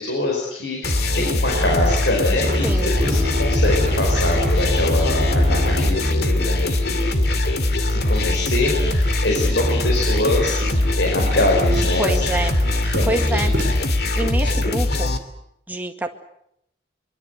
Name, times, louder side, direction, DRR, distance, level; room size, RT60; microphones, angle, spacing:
voice 1, 0.0-7.2 7.7-12.2 12.6-13.6, left 1 dB, 75° left, 0 dB, 5.2 m, -24 dB
sound 1, 0.8-15.2, left 1 dB, 55° left, 2.5 m, -21 dB
sound 2, 1.4-13.9, equal, 45° right, 6.1 m, -36 dB
voice 2, 2.6-3.0 12.0-12.5 12.8-13.5 14.2-15.1 15.7-16.1, right 1 dB, 10° right, 3 dB, 2.0 m, -26 dB
sound 3, 2.9-8.8, left 1 dB, 30° right, 5.1 m, -27 dB
24.5 x 23.5 x 8.1 m, 0.76 s
head